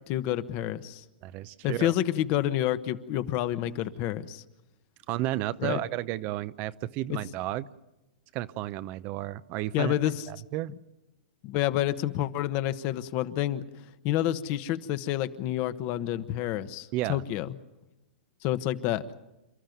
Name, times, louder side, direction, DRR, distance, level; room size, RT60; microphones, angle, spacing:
voice 1, 0.1-1.0 1.6-4.4 5.6-5.8 7.1-7.2 9.7-10.3 11.4-13.6 14.0-17.5 18.4-19.0, left 13 dB, 40° left, 12 dB, 1.1 m, -28 dB
voice 2, 1.2-1.9 5.1-7.7 8.3-9.9 10.3-10.7 16.9-17.3, right 15 dB, 35° right, 14 dB, 0.7 m, -32 dB
29.0 x 13.0 x 9.3 m, 1.0 s
hypercardioid pair, 140°, 5 cm